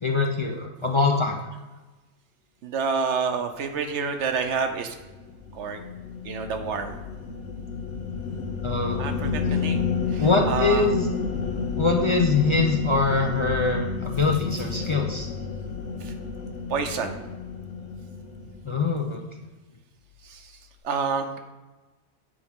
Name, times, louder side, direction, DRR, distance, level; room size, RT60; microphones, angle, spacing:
voice 1, 0.0-1.4 8.6-9.6 10.2-11.1 11.8-15.3 18.6-19.2, left 3 dB, 40° left, 1 dB, 0.5 m, -24 dB
voice 2, 2.6-4.9 5.5-5.8 6.2-7.0 9.0-10.9 14.8-14.9 16.0-16.1 16.7-17.2 20.2-20.5 20.8-21.4, right 5 dB, 85° right, 6 dB, 1.0 m, -28 dB
sound 1, 4.4-18.9, left 5 dB, 90° left, 1.2 m, -30 dB
8.2 x 4.7 x 3.6 m, 1.2 s
omnidirectional pair, 1.2 m